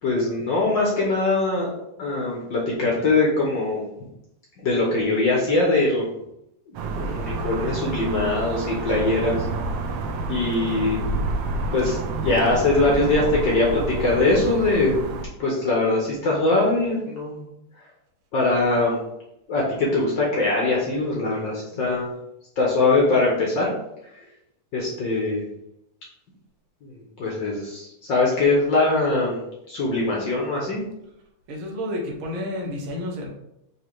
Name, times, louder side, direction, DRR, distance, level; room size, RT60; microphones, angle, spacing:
voice 1, 0.0-1.7 2.0-3.9 4.6-6.1 6.7-9.5 10.3-11.1 11.7-15.0 15.4-17.4 18.3-19.0 19.5-22.1 22.6-23.7 24.1-24.2 24.7-25.5 26.8-30.8, left 2 dB, 80° left, -3 dB, 1.0 m, -22 dB
sound 1, 6.7-15.2, right 2 dB, 75° right, 1.6 m, -29 dB
voice 2, 31.5-33.3, left 1 dB, 50° right, -2 dB, 1.6 m, -31 dB
6.3 x 3.1 x 4.7 m, 0.83 s
omnidirectional pair, 3.7 m